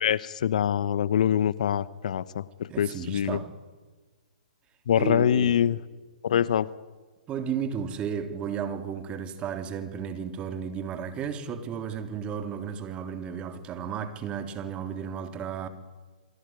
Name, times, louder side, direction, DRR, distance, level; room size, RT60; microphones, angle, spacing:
voice 1, 0.0-2.4 2.8-3.4 4.9-5.8 6.2-6.7, left 9 dB, 60° left, 0.9 m, -24 dB
voice 2, 2.7-3.5 5.0-5.6 7.3-15.7, right 7 dB, 25° right, 3.2 m, -33 dB
28.5 x 22.0 x 9.4 m
figure-of-eight pair, 120°, 4 cm